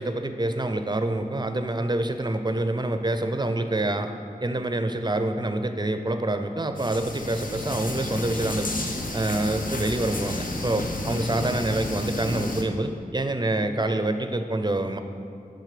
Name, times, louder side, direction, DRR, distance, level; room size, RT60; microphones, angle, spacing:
voice 1, 0.0-4.1 4.4-8.8 9.1-15.0, right 2 dB, 30° right, 7 dB, 0.5 m, -26 dB
sound 1, 6.8-12.6, left 2 dB, 65° left, 0.7 m, -31 dB
11.5 x 3.9 x 5.0 m, 2.3 s
wide cardioid pair, 45°, 15 cm